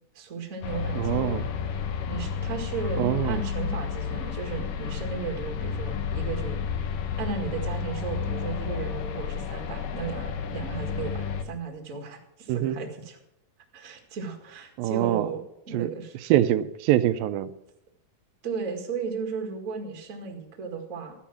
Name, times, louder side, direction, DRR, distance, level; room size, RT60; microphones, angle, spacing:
voice 1, 0.1-1.4 2.1-6.6 6.9-13.2 13.7-15.4 15.7-16.1 18.4-21.1, right 5 dB, 30° right, 3 dB, 1.6 m, -35 dB
sound 1, 0.6-11.4, left 6 dB, 70° left, 2.5 m, -31 dB
voice 2, 1.0-1.5 2.9-3.4 12.5-12.8 14.8-15.3 15.7-15.9 16.2-17.5, right 13 dB, 85° right, 11 dB, 2.4 m, -24 dB
13.0 x 10.0 x 6.0 m, 0.83 s
omnidirectional pair, 4.0 m